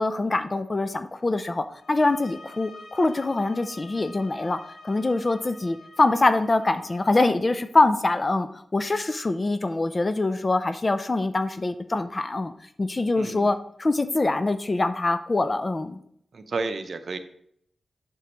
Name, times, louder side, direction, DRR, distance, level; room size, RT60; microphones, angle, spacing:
voice 1, 0.0-12.5 12.8-16.0, left 2 dB, 35° left, 10 dB, 0.5 m, -24 dB
sound 1, 1.8-7.1, left 3 dB, 65° left, 1.2 m, -47 dB
voice 2, 13.2-13.5 16.3-17.2, right 3 dB, 60° right, 9 dB, 0.7 m, -31 dB
8.1 x 6.1 x 3.0 m, 0.68 s
cardioid pair, 70°, 0 cm